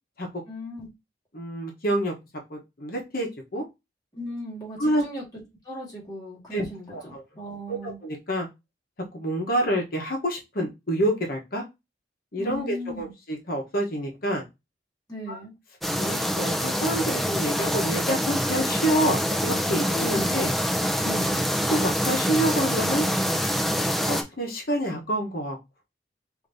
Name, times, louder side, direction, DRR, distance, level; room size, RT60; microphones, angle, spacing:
voice 1, 0.5-0.9 4.1-5.2 5.7-8.0 12.4-13.1 15.1-15.5 19.7-20.2 21.0-21.4, equal, 20° left, 1.8 m, -37 dB
voice 2, 1.3-2.1 2.5-3.6 4.8-5.0 6.5-7.2 7.7-8.5 9.1-11.6 12.3-14.4 15.3-15.4 16.0-20.5 21.7-23.1 24.1-25.6, right 1 dB, 55° left, 1.0 m, -27 dB
sound 1, 15.8-24.2, equal, ahead, 0.5 m, -25 dB
5.1 x 2.7 x 2.6 m
head